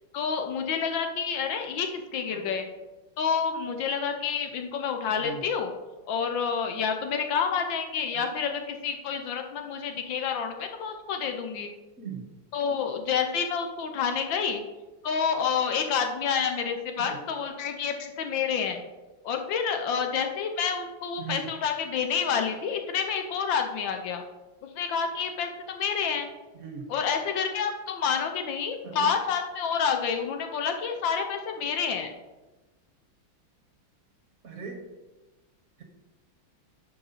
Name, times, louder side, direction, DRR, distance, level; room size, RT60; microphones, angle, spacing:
voice 1, 0.1-2.7 3.2-5.7 6.1-11.7 12.5-14.6 15.0-18.8 19.2-24.2 24.7-26.3 26.9-32.1, left 6 dB, 70° left, 5 dB, 1.5 m, -28 dB
voice 2, 12.0-12.3 17.0-17.2 21.2-21.4 26.5-26.8 28.8-29.1 34.4-34.8, right 6 dB, 50° right, 2 dB, 1.5 m, -39 dB
11.0 x 5.9 x 4.1 m, 1.1 s
omnidirectional pair, 2.2 m